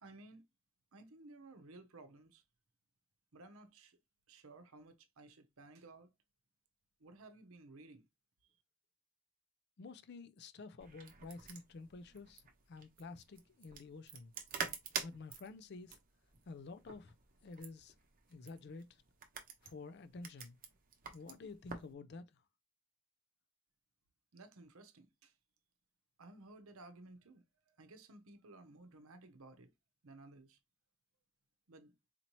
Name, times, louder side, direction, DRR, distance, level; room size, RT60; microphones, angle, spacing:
voice 1, 0.0-0.4 0.9-2.4 3.3-4.0 4.3-6.1 7.0-8.0 24.3-25.3 26.2-27.4 27.8-29.7 30.0-30.6 31.7-31.9, right 2 dB, 70° right, 0.7 m, -56 dB
voice 2, 9.8-12.4 12.7-14.3 15.0-16.0 16.5-17.1 17.4-17.9 18.3-19.0 19.6-20.6 21.1-22.4, left 3 dB, 50° left, 0.4 m, -50 dB
sound 1, 10.8-21.9, right 6 dB, 40° right, 0.7 m, -47 dB
4.2 x 2.7 x 3.0 m
head